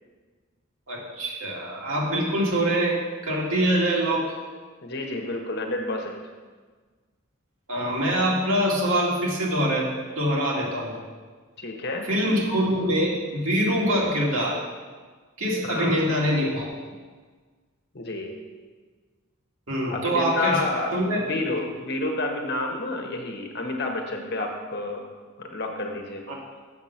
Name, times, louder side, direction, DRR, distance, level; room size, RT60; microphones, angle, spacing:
voice 1, 0.9-4.3 7.7-11.0 12.1-14.6 15.4-16.7 19.7-20.6 20.9-21.2 26.3-26.4, right 1 dB, 80° right, -4 dB, 2.2 m, -24 dB
voice 2, 4.8-6.2 11.6-12.1 15.6-15.9 17.9-18.3 19.8-25.0 25.4-26.2, left 2 dB, 50° left, 2 dB, 1.1 m, -30 dB
7.0 x 6.7 x 5.8 m, 1.4 s
head